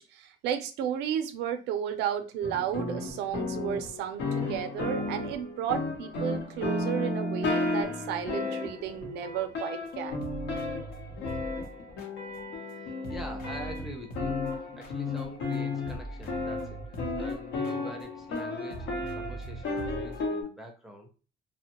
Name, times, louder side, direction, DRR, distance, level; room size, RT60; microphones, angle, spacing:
voice 1, 0.0-10.2, right 9 dB, 85° right, 8 dB, 0.5 m, -33 dB
sound 1, 2.4-20.4, left 2 dB, 90° left, 0.9 m, -33 dB
sound 2, 9.9-10.0 10.2-12.8 13.0-18.4 18.7-20.3, right 2 dB, 65° left, 0.7 m, -42 dB
voice 2, 12.7-16.8 17.2-21.1, equal, ahead, 2 dB, 0.5 m, -45 dB
2.8 x 2.1 x 2.8 m, 0.35 s
cardioid pair, 110°, 17 cm